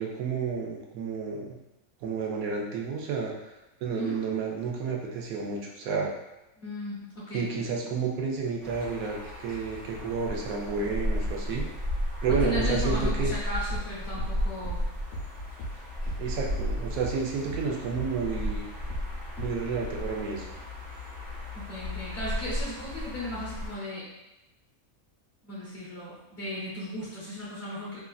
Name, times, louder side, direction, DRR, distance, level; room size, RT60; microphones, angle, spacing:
voice 1, 0.0-1.6 2.0-3.3 3.8-6.1 7.3-11.7 12.2-13.3 16.2-18.6 19.4-20.4, right 5 dB, 75° right, -1 dB, 1.0 m, -31 dB
voice 2, 6.6-7.5 12.4-14.8 21.5-24.1 25.4-28.0, equal, 55° left, -7 dB, 0.9 m, -36 dB
sound 1, 8.6-23.8, left 1 dB, 55° right, 1.4 m, -34 dB
sound 2, 13.2-17.2 17.5-19.7, equal, 75° left, 1.1 m, -38 dB
3.2 x 2.4 x 2.2 m, 0.95 s
omnidirectional pair, 1.5 m